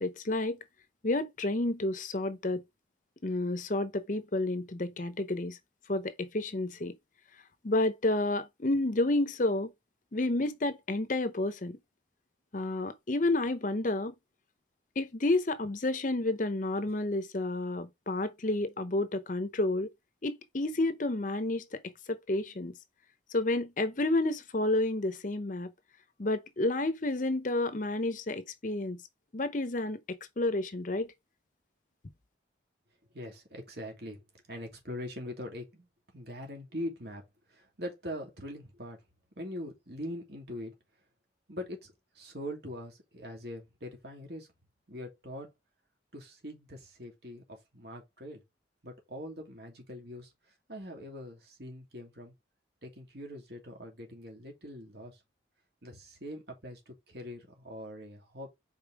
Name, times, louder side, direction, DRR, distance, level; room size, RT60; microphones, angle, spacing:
voice 1, 0.0-0.6 1.0-2.6 3.2-5.6 5.9-7.0 7.6-9.7 10.1-11.8 12.5-14.1 15.0-19.9 20.2-21.8 22.1-22.7 23.3-25.7 26.2-29.0 29.3-31.1, left 2 dB, 45° left, 0.7 m, -30 dB
voice 2, 33.1-34.2 34.5-35.9 36.1-37.2 37.5-39.0 39.4-40.7 41.5-44.5 44.9-45.5 46.1-48.4 48.8-50.3 50.7-52.3 52.8-55.2 55.8-58.5, equal, 60° right, 2.7 m, -42 dB
5.1 x 4.3 x 4.7 m
head